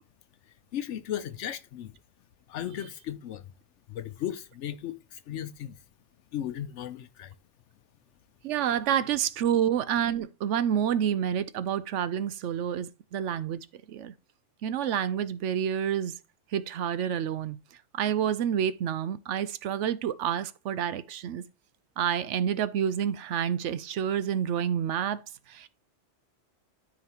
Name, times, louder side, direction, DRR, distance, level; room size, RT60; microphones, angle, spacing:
voice 1, 0.7-1.9 2.5-3.5 3.9-5.8 6.3-7.3, left 10 dB, 75° left, 0.9 m, -36 dB
voice 2, 8.4-14.1 14.6-16.1 16.5-17.6 18.0-21.4 22.0-25.2 25.5-25.7, right 9 dB, 75° right, 0.9 m, -28 dB
13.0 x 4.9 x 2.9 m
omnidirectional pair, 1.3 m